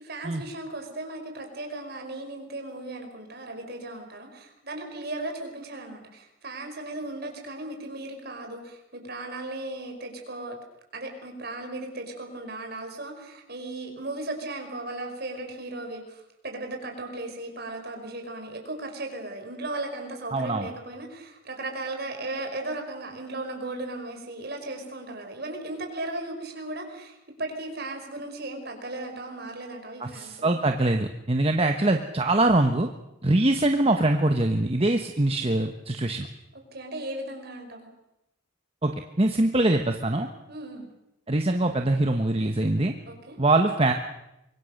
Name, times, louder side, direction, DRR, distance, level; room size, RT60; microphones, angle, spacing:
voice 1, 0.0-10.6 10.9-30.5 36.5-37.9 40.5-40.9 43.1-43.4, right 2 dB, 50° right, 4 dB, 5.3 m, -36 dB
voice 2, 20.3-20.7 30.0-32.9 33.2-36.3 38.8-38.9 39.2-40.3 41.3-42.9 43.4-43.9, right 2 dB, 30° right, 5 dB, 1.2 m, -23 dB
25.5 x 23.0 x 6.6 m, 0.90 s
head